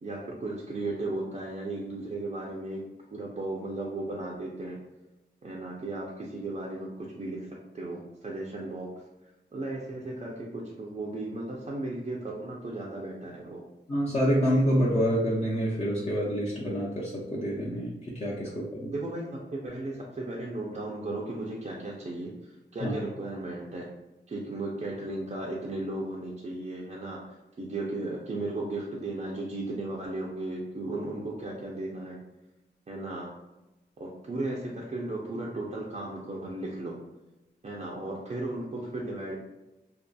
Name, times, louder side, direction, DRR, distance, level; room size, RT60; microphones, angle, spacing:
voice 1, 0.0-2.8 3.1-4.8 5.4-8.9 9.5-13.6 18.9-23.9 24.3-27.2 27.6-32.2 32.9-33.3 34.0-36.9 37.6-39.4, right 2 dB, 40° right, -3 dB, 0.4 m, -35 dB
voice 2, 13.9-18.9 22.8-22.9, equal, 35° left, -6 dB, 0.5 m, -27 dB
2.6 x 2.3 x 2.2 m, 1.0 s
wide cardioid pair, 75°, 19 cm